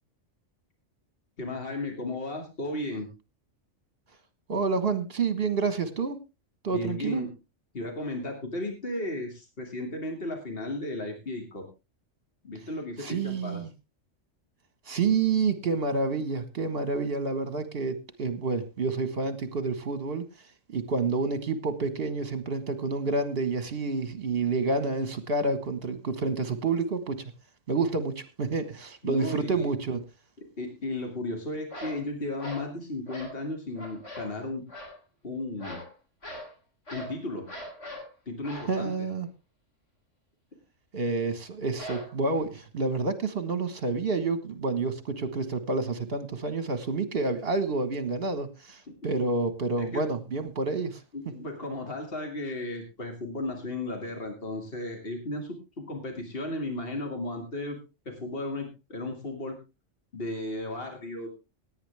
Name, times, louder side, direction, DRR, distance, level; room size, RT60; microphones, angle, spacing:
voice 1, 1.4-3.1 6.7-7.3 7.7-11.7 12.4-13.6 29.0-29.7 30.4-34.6 35.2-35.8 36.9-37.4 38.3-39.1 49.8-50.0 51.1-57.8 58.1-59.6 60.1-61.3, left 2 dB, 50° left, 2 dB, 2.7 m, -35 dB
voice 2, 4.5-6.2 6.6-7.2 13.0-13.7 14.9-20.2 20.7-27.3 27.7-30.0 38.7-39.3 40.9-51.0, right 4 dB, 50° right, 10 dB, 1.7 m, -29 dB
sound 1, 31.7-32.0 32.4-32.7 33.1-33.4 33.7-34.3 34.7-35.0 35.6-35.9 36.2-36.5 36.9-37.2 37.5-38.1 38.4-38.7 41.8-42.4, equal, 70° left, 4.0 m, -41 dB
17.5 x 9.5 x 3.5 m, 0.28 s
omnidirectional pair, 1.3 m